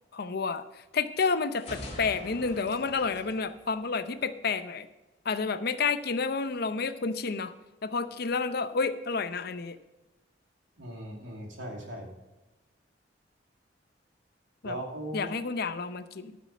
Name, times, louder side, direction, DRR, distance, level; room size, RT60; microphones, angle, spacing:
voice 1, 0.1-0.6 0.9-4.9 5.2-7.5 7.8-9.8 14.6-14.8 15.1-16.4, left 4 dB, 55° left, 11 dB, 0.6 m, -30 dB
sound 1, 1.5-4.4, left 1 dB, 35° left, 2.8 m, -44 dB
voice 2, 10.8-12.1 14.6-15.3, equal, 90° right, 1 dB, 2.5 m, -38 dB
12.0 x 6.6 x 5.4 m, 1.1 s
head